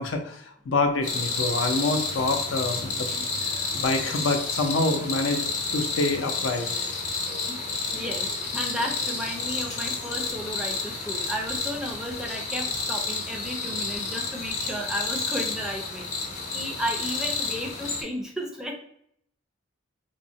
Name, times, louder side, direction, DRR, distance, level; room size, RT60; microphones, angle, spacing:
voice 1, 0.0-3.1 3.5-6.7, left 3 dB, 85° left, 5 dB, 0.5 m, -27 dB
sound 1, 1.0-18.0, left 3 dB, 35° left, 0.7 m, -30 dB
voice 2, 7.5-16.1 16.5-18.7, equal, 5° right, 0 dB, 0.4 m, -34 dB
3.6 x 2.1 x 2.6 m, 0.68 s
head